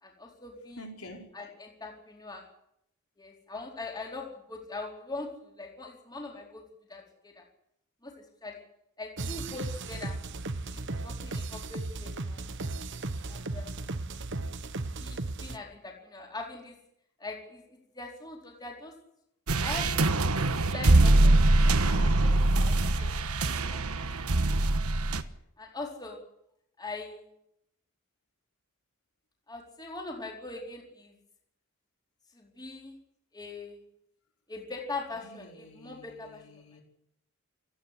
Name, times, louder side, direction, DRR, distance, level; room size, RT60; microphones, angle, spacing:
voice 1, 0.0-0.9 1.3-2.4 3.2-6.6 6.9-7.4 8.0-8.6 9.0-10.1 10.7-12.4 13.3-13.7 15.0-16.8 17.2-17.6 17.9-18.9 19.6-20.1 20.7-21.3 21.6-23.1 23.5-23.8 24.1-24.2 25.6-26.2 26.8-27.3 29.5-31.1 32.3-33.0 33.3-33.8 34.5-36.6, left 3 dB, 20° left, 0 dB, 4.4 m, -41 dB
voice 2, 0.8-1.3 35.2-36.8, equal, 80° left, 2 dB, 5.1 m, -48 dB
sound 1, 9.2-15.6, right 2 dB, 55° right, 1.1 m, -36 dB
sound 2, 19.5-25.2, right 2 dB, 90° right, 1.3 m, -23 dB
28.0 x 10.0 x 10.0 m, 0.75 s
head